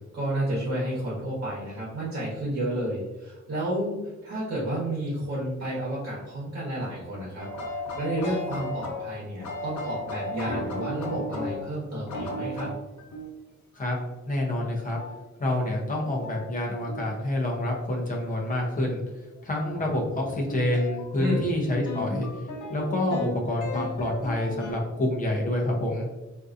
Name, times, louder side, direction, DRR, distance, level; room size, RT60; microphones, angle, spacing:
voice 1, 0.1-4.0 4.2-7.5 7.9-12.7 21.2-21.4, right 1 dB, 50° right, -6 dB, 1.1 m, -31 dB
sound 1, 7.4-11.7 12.1-13.3 15.0-15.2 16.2-16.4 16.9-17.1 19.4-24.7, left 1 dB, 85° left, 0.7 m, -35 dB
voice 2, 14.3-15.0 15.4-19.0 19.4-22.3 22.7-26.1, left 1 dB, 30° left, -1 dB, 0.7 m, -27 dB
3.7 x 2.6 x 2.5 m, 1.1 s
wide cardioid pair, 175°, 29 cm